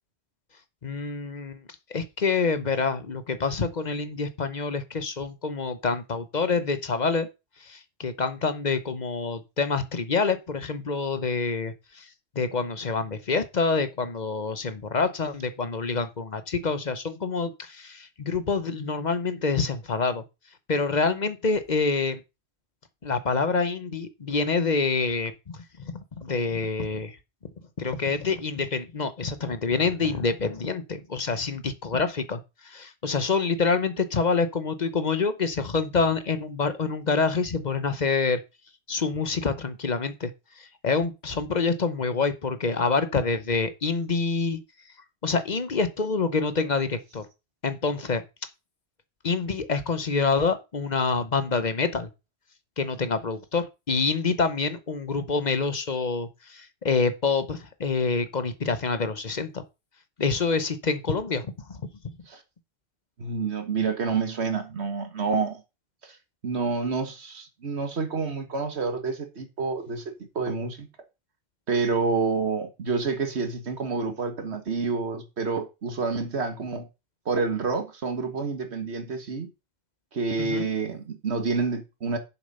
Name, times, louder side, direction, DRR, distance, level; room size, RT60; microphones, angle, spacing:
voice 1, 0.8-1.6 1.9-7.3 7.6-12.1 12.3-20.2 20.7-22.2 23.0-27.2 27.8-38.4 38.9-44.6 45.2-47.3 47.6-48.2 49.2-52.1 52.8-59.6 60.2-61.8 62.0-62.2 80.4-80.7, left 4 dB, 45° left, 1.0 m, -27 dB
voice 2, 63.2-65.6 66.0-66.2 66.4-70.9 71.7-76.9 77.3-79.5 80.1-82.2, right 4 dB, 90° right, 1.8 m, -28 dB
7.2 x 6.5 x 5.4 m
omnidirectional pair, 1.1 m